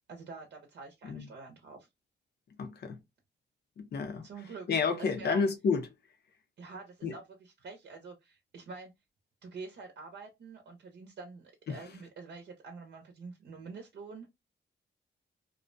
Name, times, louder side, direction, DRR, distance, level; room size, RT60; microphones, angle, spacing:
voice 1, 0.1-1.9 4.2-4.7 5.0-5.4 6.6-8.9 9.4-14.3, right 4 dB, 60° right, 0.7 m, -46 dB
voice 2, 2.6-3.0 3.8-4.3 4.7-5.9 7.0-7.1 11.7-11.8, left 5 dB, 60° left, 0.6 m, -30 dB
2.4 x 2.1 x 2.5 m
cardioid pair, 115°, 19 cm